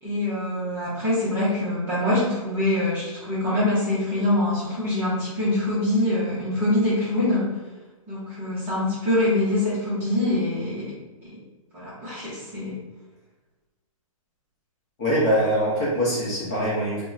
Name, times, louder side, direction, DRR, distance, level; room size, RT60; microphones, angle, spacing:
voice 1, 0.0-7.5 8.1-10.9 11.2-11.4 11.7-12.8, left 1 dB, 15° right, -11 dB, 0.7 m, -24 dB
voice 2, 15.0-17.0, equal, 25° left, -7 dB, 0.9 m, -23 dB
2.8 x 2.2 x 3.5 m, 1.1 s
hypercardioid pair, 170°, 18 cm